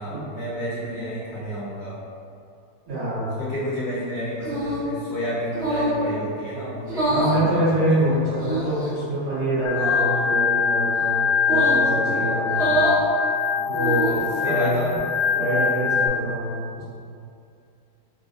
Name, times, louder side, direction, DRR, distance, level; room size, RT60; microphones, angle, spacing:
voice 1, 0.0-2.0 3.4-7.9 12.0-12.2 12.6-12.9 13.6-13.7 14.0-15.0, equal, 55° left, -11 dB, 1.2 m, -31 dB
voice 2, 2.9-3.4 7.1-12.8 13.7-14.8 15.3-16.8, right 1 dB, 80° right, -12 dB, 2.2 m, -25 dB
sound 1, 4.4-4.9 5.5-6.0 6.8-7.4 8.3-8.9 9.7-10.1 11.4-11.9 12.5-13.0 13.7-14.3, right 1 dB, 45° right, 0.8 m, -25 dB
Organ, 9.7-16.1, left 6 dB, 80° left, 0.9 m, -23 dB
4.8 x 2.0 x 2.5 m, 2.5 s
omnidirectional pair, 2.3 m